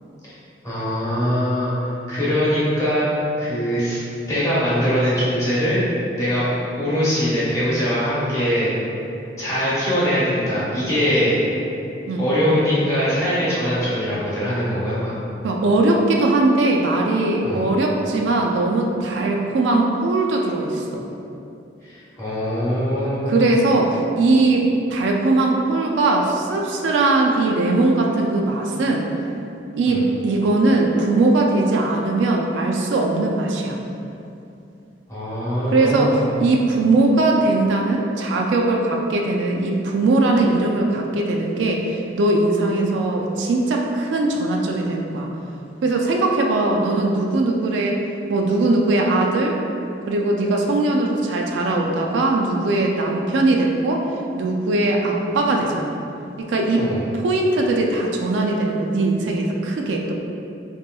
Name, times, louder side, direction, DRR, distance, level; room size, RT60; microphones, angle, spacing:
voice 1, 0.6-3.1 3.4-4.0 4.3-5.8 6.2-8.7 9.4-11.4 12.2-15.2 17.4-17.6 21.9-23.3 29.9-30.0 35.1-36.3 56.8-57.0, equal, 20° left, -10 dB, 0.9 m, -22 dB
voice 2, 15.4-21.1 23.3-29.1 29.7-33.8 35.7-45.3 45.8-48.0 48.3-49.6 50.1-54.0 54.4-56.0 56.4-56.8 57.1-60.1, right 2 dB, 80° right, 0 dB, 0.3 m, -20 dB
3.0 x 2.9 x 2.2 m, 2.7 s
head